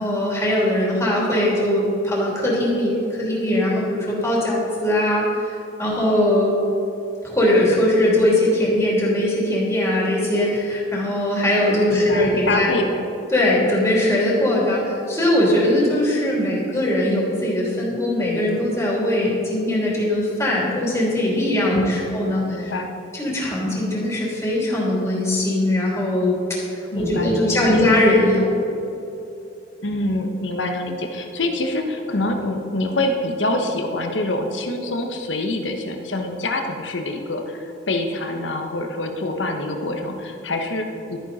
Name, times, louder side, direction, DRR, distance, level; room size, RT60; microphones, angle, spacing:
voice 1, 0.0-6.5 7.2-12.8 13.3-22.7 23.1-26.3 26.9-28.5, left 1 dB, 15° left, -5 dB, 3.0 m, -20 dB
voice 2, 11.9-13.0 21.7-22.2 22.5-22.9 26.9-27.8 29.8-41.2, left 2 dB, 85° left, 4 dB, 1.2 m, -26 dB
13.0 x 9.2 x 4.3 m, 2.8 s
head